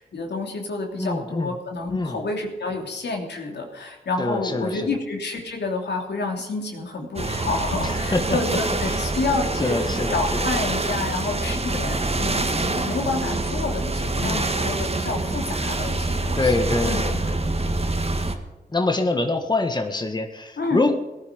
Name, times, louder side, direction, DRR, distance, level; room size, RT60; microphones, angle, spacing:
voice 1, 0.1-9.8 10.0-16.5 16.8-17.2 20.6-20.8, left 3 dB, 80° left, 2 dB, 3.0 m, -29 dB
voice 2, 1.0-1.5 1.9-2.2 4.2-4.9 7.8-8.4 8.9-9.1 9.6-10.5 11.7-12.1 14.2-14.7 16.4-17.2 18.7-20.9, left 2 dB, 25° left, 6 dB, 1.6 m, -25 dB
sound 1, 7.2-18.4, right 2 dB, 35° right, 1.9 m, -26 dB
18.0 x 11.5 x 5.2 m, 1.1 s
cardioid pair, 65°, 18 cm